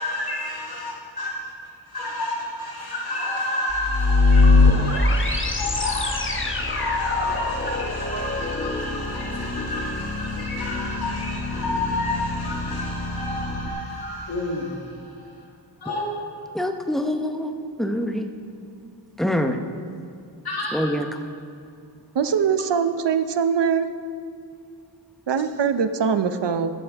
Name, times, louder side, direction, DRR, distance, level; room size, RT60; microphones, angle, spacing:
voice 1, 0.0-1.4 1.9-15.0 15.8-16.0 20.4-20.9, left 2 dB, 60° left, -3 dB, 2.4 m, -30 dB
sound 1, 3.7-13.7, left 3 dB, 30° left, 0.9 m, -23 dB
voice 2, 16.5-18.3 19.2-19.6 20.7-21.1, equal, ahead, 5 dB, 0.8 m, -25 dB
voice 3, 22.1-23.9 25.3-26.7, right 6 dB, 70° right, 10 dB, 0.7 m, -22 dB
15.0 x 11.5 x 3.5 m, 2.3 s
wide cardioid pair, 130°, 43 cm